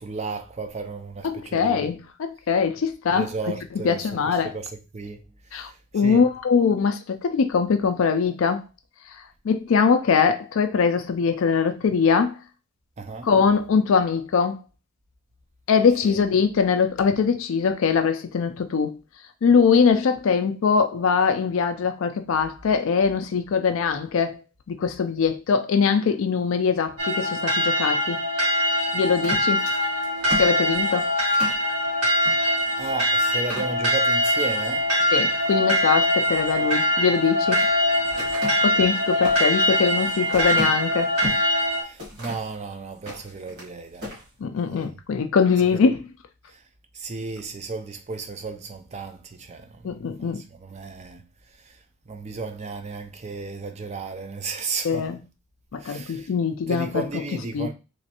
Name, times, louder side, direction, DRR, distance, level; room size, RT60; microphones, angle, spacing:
voice 1, 0.0-2.0 3.1-5.2 5.5-6.3 13.0-13.3 15.9-16.3 32.8-34.9 41.8-44.2 44.7-44.9 45.6-45.8 46.5-46.6 46.9-51.2 51.6-51.8 52.1-55.2 55.8-56.3 56.7-57.7, right 4 dB, 30° right, 0.4 m, -34 dB
voice 2, 1.2-4.6 5.5-8.6 9.4-12.4 13.2-14.6 15.7-19.0 19.4-24.4 24.7-28.2 28.9-29.6 30.4-31.1 35.1-37.7 38.6-41.1 44.4-46.1 49.8-50.4 54.8-55.2 55.7-57.7, left 5 dB, 60° left, 0.4 m, -22 dB
sound 1, 27.0-41.8, equal, 85° right, 1.8 m, -23 dB
sound 2, 29.1-31.6 32.2-32.4 32.8-32.9 33.3-34.2 34.7-35.2 37.0-37.7 38.2-41.5 42.0-42.5 42.9-43.7 44.0-44.3, equal, 45° right, 1.7 m, -35 dB
3.2 x 3.0 x 2.9 m
head